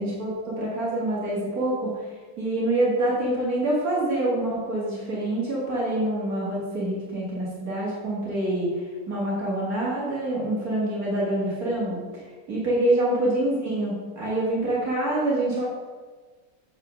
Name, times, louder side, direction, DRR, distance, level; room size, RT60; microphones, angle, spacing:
voice 1, 0.0-12.2 12.5-15.7, right 1 dB, 75° right, -5 dB, 2.5 m, -26 dB
7.6 x 4.8 x 6.3 m, 1.4 s
omnidirectional pair, 1.6 m